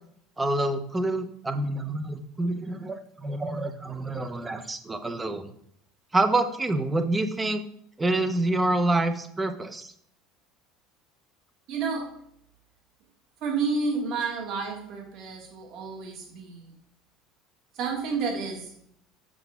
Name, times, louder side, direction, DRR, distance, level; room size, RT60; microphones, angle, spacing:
voice 1, 0.4-5.5 6.1-7.6 8.0-9.9, right 2 dB, 10° right, 9 dB, 0.6 m, -27 dB
voice 2, 11.7-12.1 13.4-16.7 17.7-18.7, right 4 dB, 50° right, 1 dB, 1.5 m, -30 dB
7.1 x 6.1 x 3.4 m, 0.68 s
cardioid pair, 155°, 0 cm